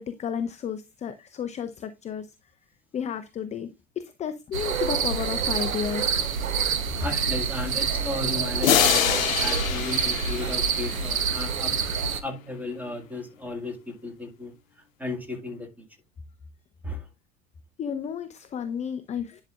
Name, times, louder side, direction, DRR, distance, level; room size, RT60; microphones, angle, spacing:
voice 1, 0.0-2.3 2.9-3.7 4.2-6.1 17.8-19.4, left 8 dB, 15° left, 0.5 m, -32 dB
sound 1, 4.5-12.2, right 6 dB, 75° right, 1.0 m, -27 dB
voice 2, 7.0-11.8 12.2-14.5 15.0-15.7 16.8-17.0, left 2 dB, 5° right, 2.0 m, -34 dB
sound 2, 8.6-11.3, left 10 dB, 70° left, 0.8 m, -25 dB
10.5 x 5.2 x 2.4 m
figure-of-eight pair, 75°, 41 cm